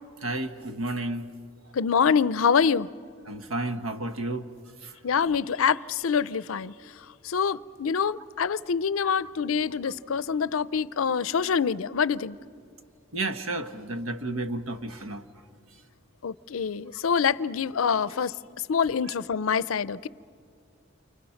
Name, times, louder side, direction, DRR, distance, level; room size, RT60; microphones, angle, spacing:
voice 1, 0.2-1.3 3.3-4.4 4.8-4.9 9.0-9.1 13.1-15.2, right 2 dB, 90° right, 9 dB, 1.2 m, -32 dB
voice 2, 1.7-2.9 5.0-6.7 7.2-12.4 16.2-18.3 18.7-20.1, left 6 dB, 80° left, 18 dB, 0.5 m, -25 dB
29.5 x 25.0 x 5.8 m, 2.4 s
head